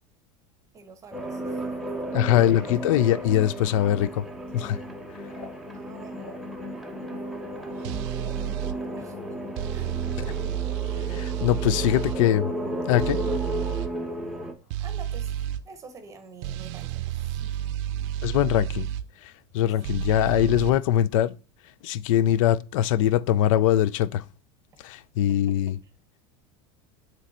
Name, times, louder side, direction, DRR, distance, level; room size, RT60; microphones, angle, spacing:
voice 1, 0.7-1.9 2.5-2.6 5.7-6.4 8.1-9.2 9.5-10.0 11.7-11.9 14.8-15.4 15.6-17.5 19.9-20.0, right 4 dB, 20° right, 0.9 m, -48 dB
sound 1, 1.1-14.5, equal, ahead, 0.6 m, -34 dB
sound 2, 1.9-12.2 13.5-20.3, left 3 dB, 65° left, 1.9 m, -53 dB
voice 2, 2.1-4.3 4.5-4.8 11.1-12.5 12.9-13.2 18.2-18.9 19.2-21.4 21.8-24.2 24.8-25.8, left 12 dB, 85° left, 0.4 m, -22 dB
sound 3, 7.8-8.8 9.6-12.2 13.0-13.9 14.7-15.6 16.4-19.0 19.8-20.7, right 13 dB, 65° right, 0.5 m, -30 dB
7.6 x 3.2 x 4.2 m
supercardioid pair, 155°, 16 cm